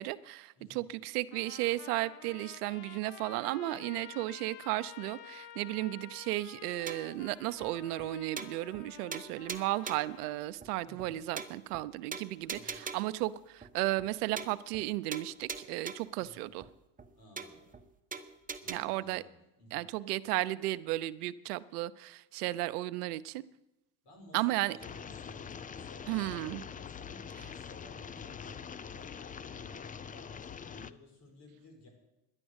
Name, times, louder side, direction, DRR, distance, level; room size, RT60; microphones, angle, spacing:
voice 1, 0.0-16.6 18.7-19.2 19.7-23.4 24.3-24.8 26.1-26.6, right 17 dB, 85° right, 16 dB, 0.7 m, -34 dB
voice 2, 0.6-0.9 10.8-11.3 12.5-12.8 16.2-16.5 17.1-17.7 18.6-19.9 24.0-31.9, left 1 dB, 60° left, 3 dB, 5.4 m, -56 dB
Trumpet, 1.3-10.4, left 11 dB, 85° left, 0.8 m, -51 dB
sound 1, 6.9-7.2 7.6-7.7 8.0-8.1 8.4-8.9 9.1-10.2 10.6-10.7 11.0-11.1 11.4-11.8 12.1-13.2 13.6-13.7 14.0-14.1 14.4-14.9 15.1-16.2 16.6-16.7 17.0-17.1 17.4-17.8 18.1-18.8, right 5 dB, 20° right, 1.0 m, -42 dB
sound 2, 24.8-30.9, left 7 dB, 20° left, 0.4 m, -44 dB
11.0 x 10.5 x 8.0 m, 0.94 s
supercardioid pair, 85°, 45 cm